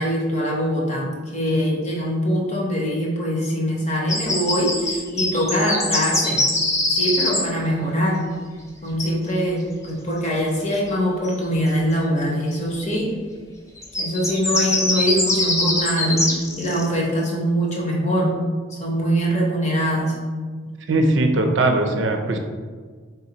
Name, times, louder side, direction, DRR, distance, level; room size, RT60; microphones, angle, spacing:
voice 1, 0.0-6.4 6.9-8.2 8.8-13.1 14.0-18.4 18.7-20.2, equal, 35° left, -3 dB, 0.9 m, -23 dB
sound 1, 4.1-7.4 11.2-11.3 13.8-16.9, left 2 dB, 15° left, 0.5 m, -22 dB
voice 2, 20.9-22.4, right 2 dB, 70° right, 4 dB, 0.5 m, -19 dB
3.9 x 3.7 x 2.9 m, 1.5 s
head